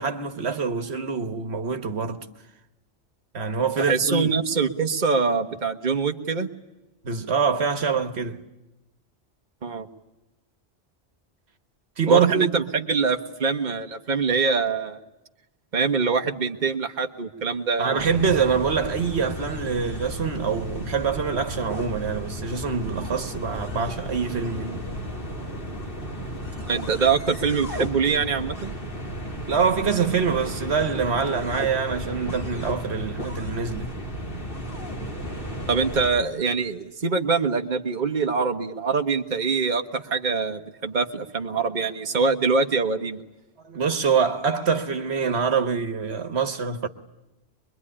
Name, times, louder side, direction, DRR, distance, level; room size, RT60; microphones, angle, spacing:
voice 1, 0.0-2.2 3.3-4.3 7.0-8.4 12.0-12.6 17.8-24.8 29.5-33.9 43.6-46.9, right 6 dB, 75° right, 1.6 m, -25 dB
voice 2, 3.8-6.5 9.6-9.9 12.1-15.0 15.7-18.1 26.6-28.7 35.7-43.2, right 4 dB, 45° right, 1.4 m, -24 dB
sound 1, 18.0-36.1, equal, 55° left, 3.8 m, -34 dB
24.0 x 22.5 x 9.9 m
omnidirectional pair, 1.1 m